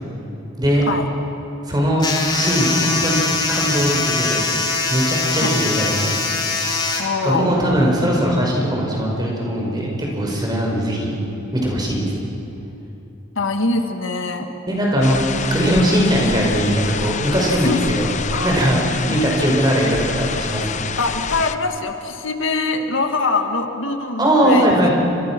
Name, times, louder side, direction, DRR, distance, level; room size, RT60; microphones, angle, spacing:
voice 1, 1.7-3.2 3.5-4.4 4.9-6.1 7.2-11.2 11.5-12.1 14.7-18.1 18.4-20.8 24.2-24.9, equal, 20° right, -2 dB, 5.2 m, -19 dB
sound 1, 2.0-7.0, left 3 dB, 20° left, 2.8 m, -22 dB
voice 2, 7.0-7.6 13.4-14.5 17.6-17.8 18.3-18.6 19.1-19.2 19.4-19.5 21.0-24.9, left 3 dB, 85° left, 5 dB, 1.9 m, -23 dB
sound 2, 15.0-21.5, left 5 dB, 40° left, 0.7 m, -27 dB
30.0 x 25.0 x 6.1 m, 2.9 s
head